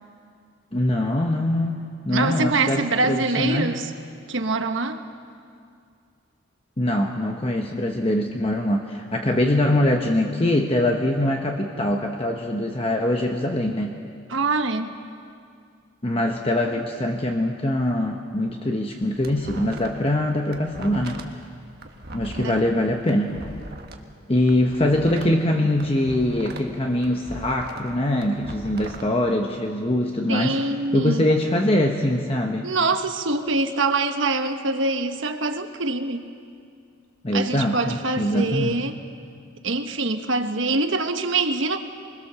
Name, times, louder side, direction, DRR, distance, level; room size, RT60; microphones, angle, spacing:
voice 1, 0.7-1.8 2.0-3.7 6.8-13.9 16.0-21.2 22.1-23.4 24.3-30.6 30.9-32.7 37.2-38.8, left 1 dB, 25° left, 2 dB, 1.0 m, -23 dB
voice 2, 2.1-3.9 4.3-5.0 14.3-15.0 22.4-22.6 30.3-31.3 32.6-36.2 37.3-38.9 39.6-41.8, right 3 dB, 65° right, 7 dB, 1.2 m, -24 dB
sound 1, 18.8-20.1 20.4-24.0 24.4-26.7 27.0-29.0, right 2 dB, 50° right, 1.4 m, -40 dB
24.0 x 21.0 x 6.8 m, 2.3 s
head